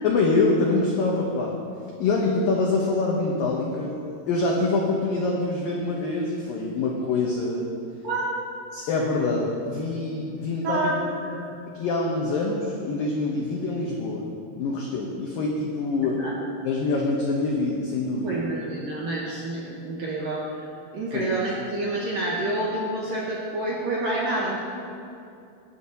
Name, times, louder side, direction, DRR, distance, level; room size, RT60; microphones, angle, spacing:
voice 1, 0.0-1.6 2.0-3.9 4.3-7.7 8.9-10.9 11.7-14.3 14.6-16.3 16.6-18.4 21.1-21.3, left 3 dB, 90° left, -2 dB, 2.0 m, -25 dB
voice 2, 10.6-11.4 16.2-16.3 18.2-20.7 20.9-24.6, right 2 dB, 75° right, -5 dB, 2.1 m, -28 dB
19.0 x 10.5 x 2.8 m, 2.6 s
omnidirectional pair, 5.5 m